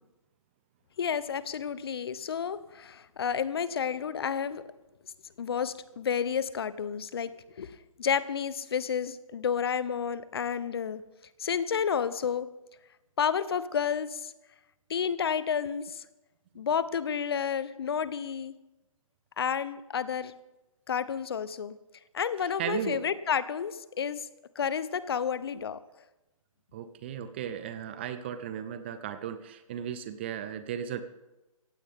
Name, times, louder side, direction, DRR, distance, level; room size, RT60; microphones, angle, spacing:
voice 1, 1.0-4.6 5.4-11.0 11.4-12.5 13.2-14.3 14.9-16.0 16.5-18.5 19.4-20.3 20.9-21.8 22.1-24.3 24.6-25.8, left 7 dB, 45° left, 16 dB, 0.8 m, -31 dB
voice 2, 22.4-23.1 26.7-31.0, right 9 dB, 20° right, 12 dB, 0.5 m, -36 dB
18.0 x 16.0 x 3.6 m, 1.0 s
figure-of-eight pair, 145°, 18 cm